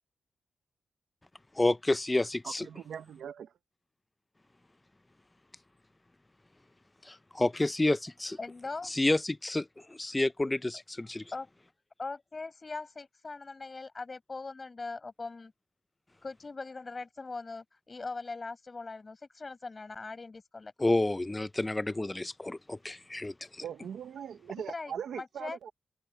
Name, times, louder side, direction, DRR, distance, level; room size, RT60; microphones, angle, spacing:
voice 1, 1.6-2.7 7.1-8.4 8.8-11.2 20.8-23.3, left 2 dB, 20° left, 0.6 m, -29 dB
voice 2, 2.4-3.5 23.6-25.7, right 8 dB, 85° right, 1.1 m, -40 dB
voice 3, 8.4-8.9 11.3-11.5 12.0-15.5 16.2-20.7 24.7-25.6, left 3 dB, 40° left, 5.5 m, -41 dB
cardioid pair, 65°, 0 cm